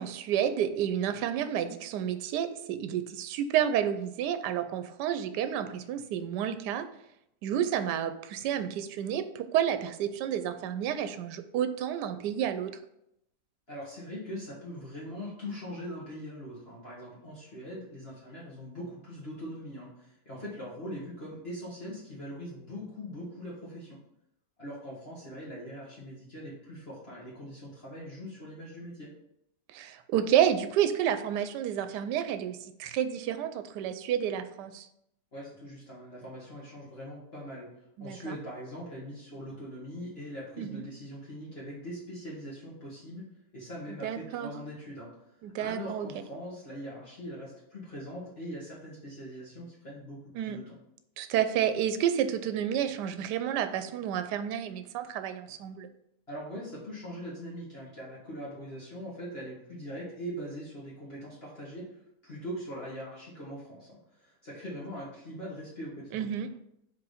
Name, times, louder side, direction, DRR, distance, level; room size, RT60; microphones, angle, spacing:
voice 1, 0.0-6.9 7.4-12.7 29.7-34.9 38.0-38.4 40.6-40.9 43.9-44.5 45.4-46.1 50.3-50.6 51.2-55.9 66.1-66.5, right 9 dB, 80° right, 10 dB, 1.2 m, -30 dB
voice 2, 13.7-24.0 24.6-29.1 35.3-37.7 38.0-43.3 43.5-45.1 45.6-50.7 56.3-61.9 62.2-66.3, equal, 40° left, -7 dB, 1.8 m, -41 dB
4.8 x 4.0 x 4.9 m, 0.79 s
omnidirectional pair, 1.8 m